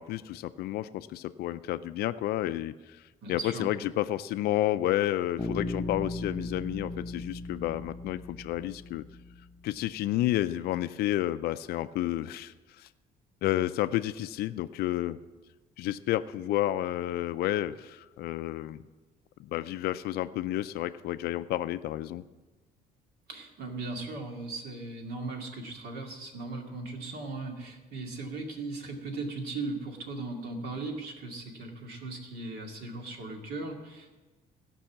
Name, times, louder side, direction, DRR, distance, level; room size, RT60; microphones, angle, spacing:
voice 1, 0.0-3.0 3.3-9.0 9.6-12.9 13.4-15.2 15.8-18.8 19.4-22.2, left 14 dB, 70° left, 12 dB, 0.4 m, -31 dB
voice 2, 3.2-3.7 23.3-34.1, right 3 dB, 70° right, 2 dB, 2.3 m, -38 dB
Bass guitar, 5.4-9.4, left 2 dB, 20° left, 0.7 m, -37 dB
16.0 x 5.5 x 7.3 m, 1.2 s
cardioid pair, 110°, 17 cm